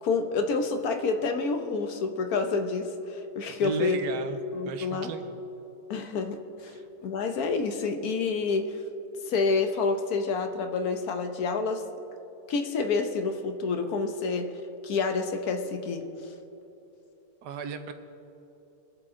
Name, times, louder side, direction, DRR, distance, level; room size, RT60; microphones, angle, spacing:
voice 1, 0.0-4.0 4.5-5.1 5.9-8.8 9.3-11.8 12.5-14.5 14.8-16.3, left 4 dB, 65° left, 6 dB, 1.3 m, -28 dB
voice 2, 3.6-4.4 4.6-5.4 6.7-6.8 17.4-17.9, right 6 dB, 85° right, 8 dB, 1.4 m, -35 dB
22.0 x 7.8 x 3.7 m, 3.0 s
omnidirectional pair, 1.8 m